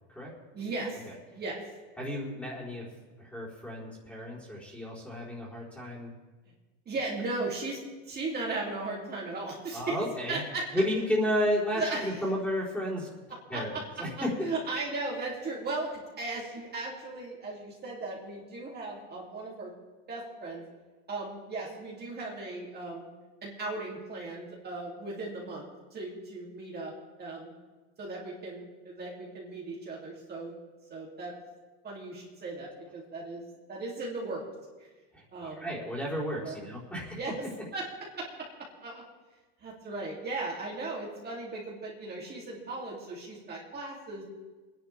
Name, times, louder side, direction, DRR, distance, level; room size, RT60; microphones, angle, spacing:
voice 1, 0.5-1.0 1.3-1.6 6.8-7.8 8.1-10.0 10.3-10.6 11.8-12.1 13.5-13.8 14.4-19.7 20.1-20.6 21.1-23.1 23.4-25.7 25.9-26.9 27.2-27.5 28.0-30.6 30.9-31.3 31.8-33.4 33.7-34.4 35.3-35.6 36.4-36.6 36.9-37.3 37.7-37.9 38.2-38.3 38.8-39.0 39.6-44.2, right 3 dB, 30° right, -4 dB, 3.2 m, -37 dB
voice 2, 2.0-6.1 9.7-10.4 10.7-13.2 13.5-14.5 35.1-37.7, equal, 5° left, -7 dB, 4.1 m, -33 dB
24.5 x 11.0 x 3.6 m, 1.2 s
supercardioid pair, 120°, 32 cm